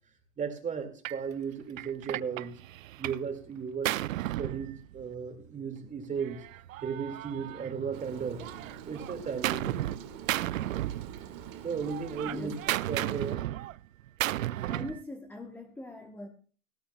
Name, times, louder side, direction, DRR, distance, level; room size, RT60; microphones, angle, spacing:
voice 1, 0.4-2.5 3.0-3.9 4.4-6.4 6.8-8.5 8.9-10.1 11.6-12.5 12.9-13.4, right 6 dB, 20° right, 6 dB, 2.2 m, -35 dB
Gunshot gunfire, 1.0-1.2 1.8-3.3 3.6-5.3 6.2-8.0 8.4-10.0 10.3-11.5 11.8-15.0, right 14 dB, 70° right, 0.6 m, -34 dB
Rain, 7.9-13.3, right 8 dB, 45° right, 2.0 m, -45 dB
voice 2, 12.2-12.6 14.4-16.3, left 1 dB, 5° left, 5 dB, 0.9 m, -42 dB
18.0 x 14.5 x 2.3 m, 0.40 s
hypercardioid pair, 120°, 41 cm